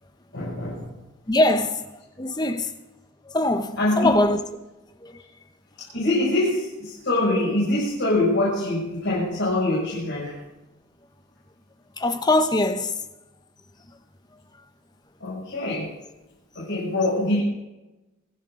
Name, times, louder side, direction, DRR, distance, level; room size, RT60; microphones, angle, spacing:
voice 1, 0.3-1.0 3.8-4.1 5.9-10.3 15.2-15.9 16.5-17.4, left 1 dB, 60° left, 6.5 m, -24 dB
voice 2, 1.3-1.8 2.2-2.7 3.2-4.4 5.0-5.2 12.0-13.0, left 2 dB, 20° left, 1.0 m, -22 dB
26.0 x 11.0 x 3.9 m
head